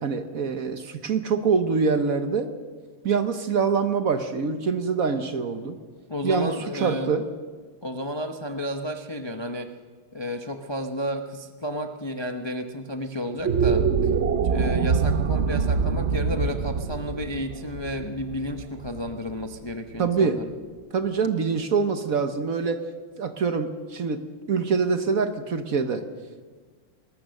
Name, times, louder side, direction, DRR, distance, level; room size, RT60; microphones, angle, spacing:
voice 1, 0.0-2.5 3.0-5.8 6.2-7.2 20.0-20.4 20.9-22.8 23.2-24.2 24.5-26.0, right 5 dB, 50° right, 9 dB, 1.2 m, -25 dB
voice 2, 6.1-7.1 7.8-9.7 10.1-14.1 14.4-20.5, equal, 40° left, 5 dB, 0.3 m, -32 dB
sound 1, 13.3-19.7, right 6 dB, 70° right, 0.6 m, -25 dB
21.0 x 19.0 x 6.5 m, 1.5 s
omnidirectional pair, 2.3 m